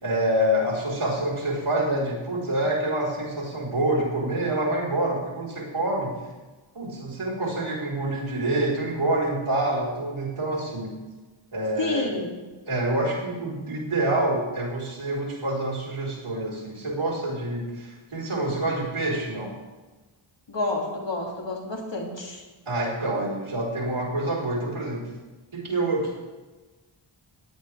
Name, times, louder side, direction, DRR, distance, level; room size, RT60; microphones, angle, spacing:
voice 1, 0.0-6.2 6.7-11.0 11.5-12.2 12.7-19.5 22.7-25.1 25.5-26.2, right 1 dB, 75° right, -5 dB, 4.3 m, -27 dB
voice 2, 11.8-12.4 20.5-22.4, left 2 dB, 60° left, -1 dB, 2.9 m, -29 dB
17.5 x 11.0 x 3.5 m, 1.2 s
wide cardioid pair, 55°, 49 cm